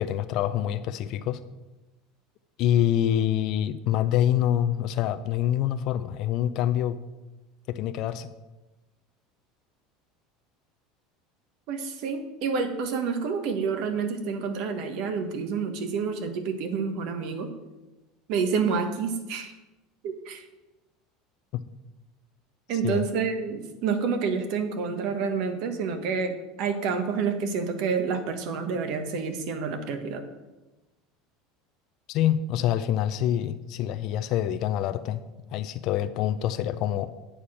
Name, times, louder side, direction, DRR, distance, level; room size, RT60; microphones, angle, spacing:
voice 1, 0.0-1.4 2.6-7.0 7.7-8.3 21.5-21.6 22.8-23.1 32.1-35.2 35.5-37.1, left 11 dB, 55° left, 10 dB, 0.5 m, -26 dB
voice 2, 11.7-17.5 18.3-19.5 20.0-20.4 22.7-30.2, right 5 dB, 65° right, 7 dB, 1.3 m, -28 dB
8.6 x 4.8 x 7.3 m, 1.1 s
supercardioid pair, 115°, 0 cm